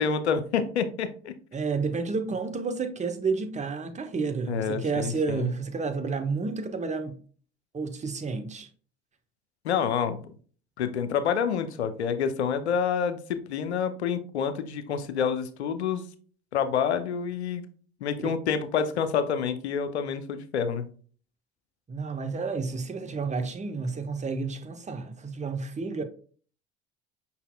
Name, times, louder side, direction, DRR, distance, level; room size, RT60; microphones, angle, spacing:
voice 1, 0.0-1.3 4.5-5.5 9.6-10.3 10.8-16.0 16.5-17.6 18.0-20.9, left 7 dB, 90° left, 0.5 m, -28 dB
voice 2, 1.5-7.2 7.7-8.7 18.2-18.3 21.9-26.0, right 4 dB, 20° right, 0.8 m, -30 dB
5.5 x 4.1 x 2.2 m
hypercardioid pair, 65°, 32 cm